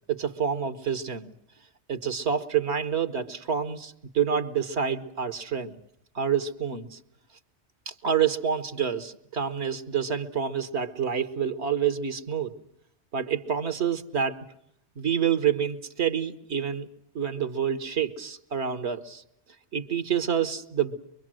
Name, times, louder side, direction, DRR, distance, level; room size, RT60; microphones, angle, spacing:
voice 1, 0.1-1.3 1.9-5.8 6.1-7.0 7.9-12.5 13.1-14.4 15.0-16.9 17.1-19.2 19.7-21.0, right 8 dB, 80° right, 11 dB, 1.5 m, -28 dB
24.0 x 24.0 x 7.6 m, 0.72 s
omnidirectional pair, 1.1 m